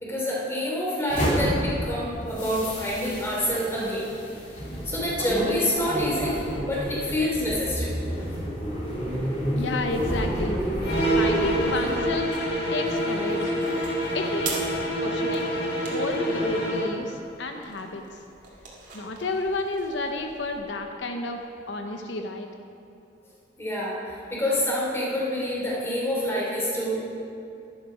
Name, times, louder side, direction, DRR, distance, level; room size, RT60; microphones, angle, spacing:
voice 1, 0.0-4.1 4.8-7.9 23.6-27.0, left 1 dB, 15° left, -5 dB, 3.1 m, -27 dB
sound 1, 1.1-12.0, equal, 40° left, 2.8 m, -30 dB
voice 2, 9.6-10.6 11.1-12.4 12.7-13.5 14.1-14.7 15.0-15.6 15.9-18.2 18.9-21.4 21.7-22.5, left 2 dB, 75° left, 4 dB, 0.8 m, -30 dB
sound 2, 10.8-17.0, right 1 dB, 55° left, 1.9 m, -27 dB
sound 3, 11.8-20.6, right 4 dB, 45° right, 2.2 m, -43 dB
11.5 x 11.0 x 5.2 m, 2.7 s
head